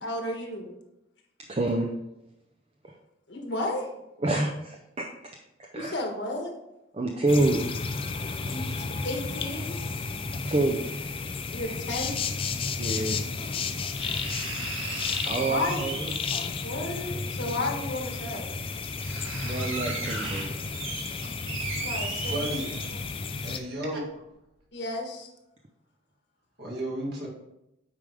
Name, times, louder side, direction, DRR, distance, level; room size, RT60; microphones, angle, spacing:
voice 1, 0.0-0.7 3.3-3.9 5.7-6.5 8.5-9.7 11.5-12.2 15.5-15.9 16.6-18.4 21.8-22.5 22.9-23.0 24.7-25.3, left 2 dB, 65° left, 2 dB, 1.3 m, -33 dB
voice 2, 1.5-1.9 4.2-5.1 5.7-6.0 6.9-7.6 10.4-10.8 12.8-13.2 15.3-16.1 19.4-20.5, right 2 dB, 30° right, 1 dB, 0.5 m, -27 dB
sound 1, 7.3-23.6, left 4 dB, 25° left, 0.4 m, -33 dB
sound 2, 11.6-11.7 13.1-13.2 14.0-16.3 17.7-17.8 18.4-18.5 18.8-23.2 23.6-23.7, right 3 dB, 85° right, 1.7 m, -36 dB
voice 3, 22.2-22.8 23.4-24.0 26.6-27.3, right 1 dB, 55° right, -3 dB, 2.0 m, -33 dB
8.5 x 5.0 x 3.5 m, 0.88 s
head